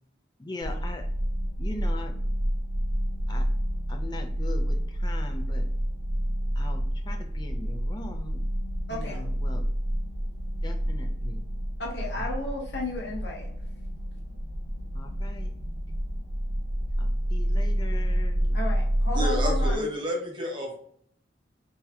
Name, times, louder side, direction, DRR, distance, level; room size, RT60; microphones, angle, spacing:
voice 1, 0.4-1.1 1.6-2.1 3.3-3.5 3.9-5.7 6.6-8.4 8.9-9.7 10.6-11.4 14.9-15.6 17.0-18.6, left 2 dB, 20° left, 4 dB, 0.4 m, -40 dB
sound 1, 0.6-19.8, equal, 85° right, 1.2 m, -28 dB
voice 2, 8.9-9.2 11.8-13.5 18.5-19.9, left 2 dB, 60° left, -2 dB, 1.2 m, -34 dB
voice 3, 19.1-20.8, equal, 25° right, 0 dB, 0.7 m, -30 dB
3.9 x 2.8 x 2.6 m, 0.66 s
head